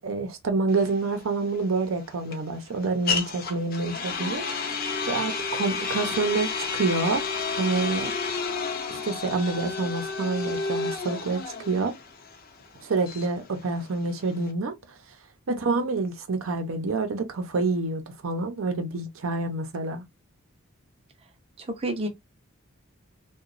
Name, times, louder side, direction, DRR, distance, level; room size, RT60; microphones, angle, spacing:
voice 1, 0.0-4.6 5.1-7.2 7.6-8.1 8.9-11.4 11.7-11.9 12.8-14.7 15.5-20.0, right 3 dB, 80° right, 0.6 m, -27 dB
sound 1, 0.7-14.5, left 4 dB, 45° left, 0.5 m, -31 dB
voice 2, 15.5-15.8 21.6-22.1, right 1 dB, 30° right, 0.5 m, -31 dB
2.8 x 2.2 x 2.4 m
head